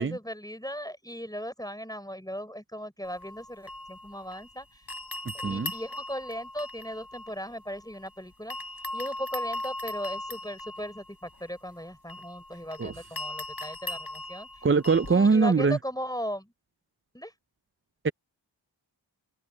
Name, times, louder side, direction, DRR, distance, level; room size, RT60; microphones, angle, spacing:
voice 1, 0.0-4.9 5.4-8.6 8.9-14.7 15.1-16.5 17.1-17.3, equal, 10° left, 6.4 m, -37 dB
sound 1, 3.0-4.5 4.9-8.1 8.5-15.3, left 1 dB, 50° left, 5.5 m, -39 dB
voice 2, 14.6-15.8 18.0-18.1, right 4 dB, 30° right, 0.4 m, -22 dB
open air
wide cardioid pair, 45°, 45 cm